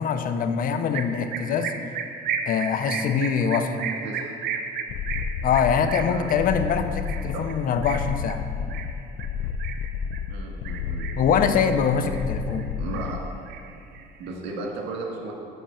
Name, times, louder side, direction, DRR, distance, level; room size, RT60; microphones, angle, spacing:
voice 1, 0.0-1.7 2.5-3.9 5.4-8.4 11.2-12.7, left 6 dB, 55° left, 8 dB, 0.7 m, -23 dB
sound 1, 0.9-10.3 10.7-11.4 11.7-12.7 12.9-14.3, right 6 dB, 70° right, 0.8 m, -34 dB
sound 2, 4.9-13.3, left 6 dB, 80° left, 0.4 m, -31 dB
voice 2, 10.3-11.1 12.8-13.2 14.2-15.3, right 3 dB, 85° right, -1 dB, 2.1 m, -34 dB
7.9 x 6.1 x 7.2 m, 2.5 s
cardioid pair, 110°, 17 cm